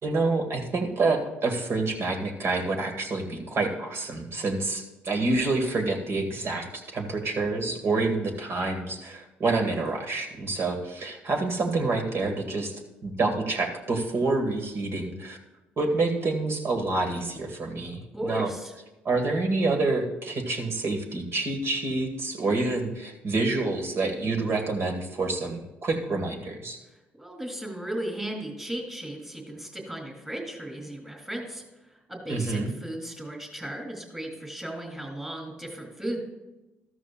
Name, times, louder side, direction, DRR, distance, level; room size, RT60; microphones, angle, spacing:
voice 1, 0.0-12.7 13.0-15.4 15.8-18.5 19.0-26.8 32.3-32.7, right 3 dB, 50° right, 4 dB, 2.1 m, -27 dB
voice 2, 18.1-18.7 27.2-31.6 31.9-36.2, right 1 dB, 10° right, 1 dB, 3.2 m, -35 dB
13.5 x 13.0 x 2.5 m, 1.1 s
hypercardioid pair, 50°, 5 cm